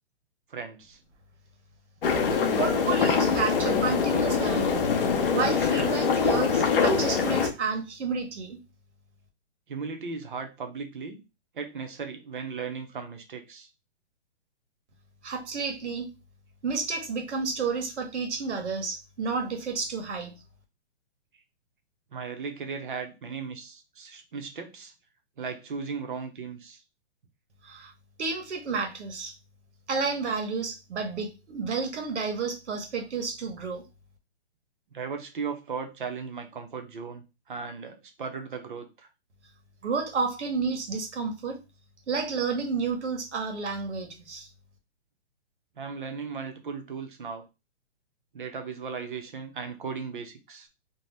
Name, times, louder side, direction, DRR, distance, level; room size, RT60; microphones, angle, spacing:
voice 1, 0.5-1.0 9.7-11.2 11.5-13.7 22.1-24.9 25.4-26.8 34.9-39.1 45.8-47.5 48.3-50.7, right 5 dB, 50° right, 6 dB, 0.6 m, -37 dB
sound 1, 2.0-7.5, left 5 dB, 55° left, 0.6 m, -24 dB
voice 2, 2.6-4.9 5.3-8.6 15.2-16.1 16.6-20.3 27.6-27.9 28.2-29.3 29.9-33.8 39.8-41.6 42.1-44.5, right 4 dB, 90° right, 5 dB, 1.1 m, -31 dB
2.7 x 2.0 x 3.2 m, 0.27 s
hypercardioid pair, 180°, 34 cm